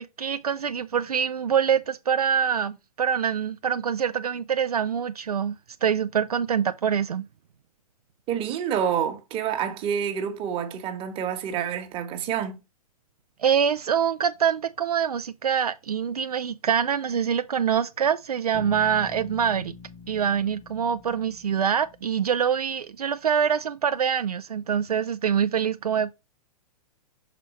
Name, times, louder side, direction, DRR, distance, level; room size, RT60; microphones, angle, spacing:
voice 1, 0.0-5.6 5.8-7.3 13.4-19.7 20.1-26.1, right 8 dB, 75° right, 0.4 m, -25 dB
voice 2, 8.3-12.6, right 8 dB, 30° right, 1.2 m, -28 dB
Bass guitar, 18.5-22.6, left 5 dB, 20° left, 1.0 m, -45 dB
6.1 x 4.2 x 4.2 m
figure-of-eight pair, 110°, 19 cm